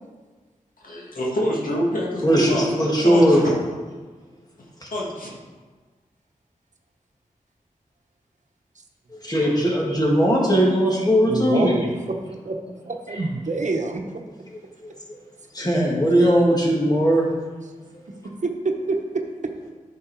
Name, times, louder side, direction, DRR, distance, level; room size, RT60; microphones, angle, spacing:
voice 1, 0.8-2.7 3.0-3.5 4.9-5.4, equal, 75° left, -3 dB, 2.0 m, -26 dB
voice 2, 2.2-3.4 4.8-4.9 9.1-11.7 15.1-15.2 15.5-17.3, equal, 25° left, -3 dB, 2.6 m, -19 dB
voice 3, 11.2-11.9 12.4-12.5 12.8-14.0 18.4-18.5 18.9-19.0, right 3 dB, 60° right, 3 dB, 1.1 m, -26 dB
9.5 x 5.8 x 4.6 m, 1.4 s
cardioid pair, 45°, 14 cm